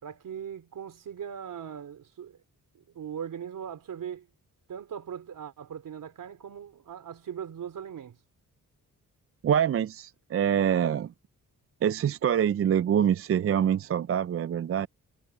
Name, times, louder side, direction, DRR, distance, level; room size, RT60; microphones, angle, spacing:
voice 1, 0.0-2.4 2.7-4.3 4.7-8.2, right 8 dB, 70° right, 3.3 m, -39 dB
voice 2, 9.4-11.1 11.8-14.9, right 9 dB, 45° right, 0.4 m, -25 dB
wide cardioid pair, 130°, 34 cm